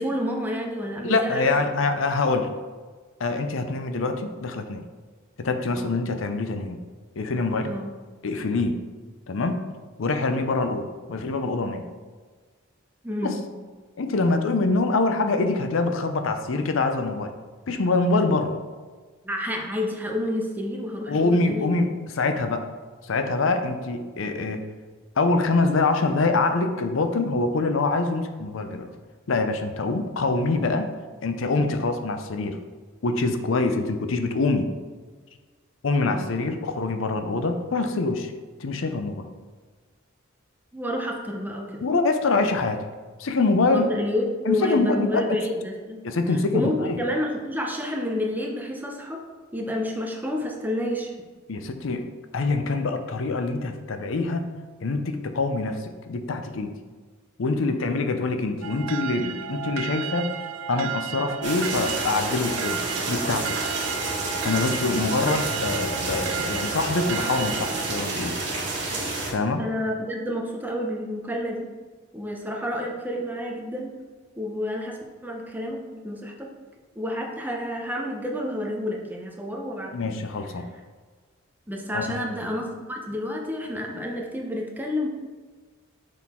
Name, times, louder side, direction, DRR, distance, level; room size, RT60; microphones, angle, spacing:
voice 1, 0.0-1.7 5.7-5.9 7.7-7.9 11.8-11.9 13.0-13.4 19.2-21.9 36.0-36.3 40.7-41.8 43.7-46.0 46.3-49.2 49.5-51.1 69.6-71.7 72.1-73.9 74.4-76.5 77.0-80.2 81.7-85.1, left 1 dB, 10° right, 0 dB, 0.7 m, -29 dB
voice 2, 1.0-2.5 3.2-4.8 5.4-6.8 7.2-7.7 8.2-8.8 9.3-9.6 10.0-11.8 13.2-13.3 14.0-17.3 17.7-18.6 21.1-22.7 23.0-24.6 25.2-28.9 29.3-30.9 31.2-32.6 33.0-34.7 35.8-38.3 38.6-39.2 41.8-42.8 43.2-43.8 44.5-45.2 46.0-47.0 51.5-52.1 52.3-54.4 54.8-56.7 57.4-60.3 60.7-62.8 63.1-63.6 64.4-68.4 69.2-69.6 79.9-80.7 81.9-82.3, left 3 dB, 70° left, 7 dB, 0.5 m, -25 dB
sound 1, 58.6-68.0, right 9 dB, 80° right, 0.4 m, -34 dB
sound 2, 61.4-69.3, right 2 dB, 60° right, 1.6 m, -29 dB
6.1 x 3.8 x 4.3 m, 1.5 s
head